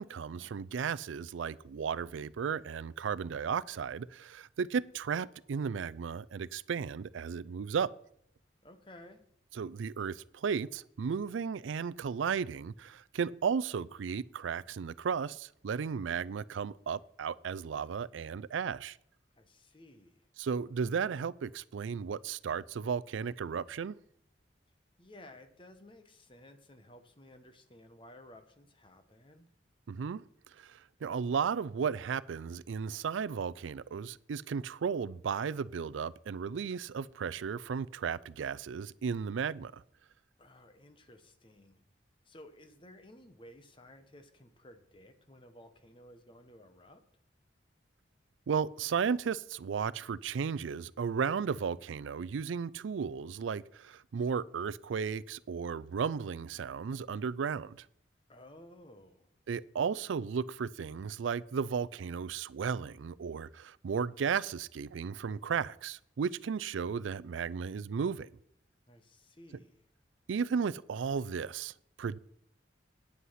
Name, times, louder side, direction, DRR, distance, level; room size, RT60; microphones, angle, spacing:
voice 1, 0.0-7.9 9.5-19.0 20.4-24.0 29.9-30.2 30.6-39.8 48.5-57.9 59.5-68.3 70.3-72.2, right 6 dB, 90° right, 0.4 m, -34 dB
voice 2, 8.6-9.2 19.3-20.3 25.0-29.5 40.4-41.8 42.2-47.0 58.3-59.3 68.9-69.9, left 1 dB, 25° left, 1.1 m, -55 dB
9.6 x 8.3 x 5.7 m
head